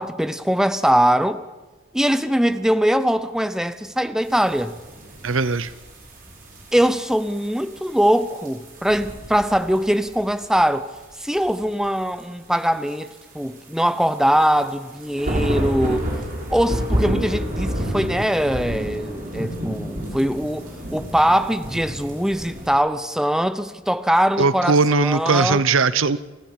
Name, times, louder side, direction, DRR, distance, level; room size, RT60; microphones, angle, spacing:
voice 1, 0.0-1.4 1.9-4.8 6.7-10.9 11.2-16.2 16.5-25.6, equal, 5° right, 0.8 m, -21 dB
sound 1, 4.2-10.6 11.0-12.2 12.9-22.7, right 1 dB, 45° right, 5.8 m, -30 dB
voice 2, 5.2-5.7 24.4-26.2, right 4 dB, 80° right, 0.8 m, -19 dB
30.0 x 13.5 x 8.6 m
head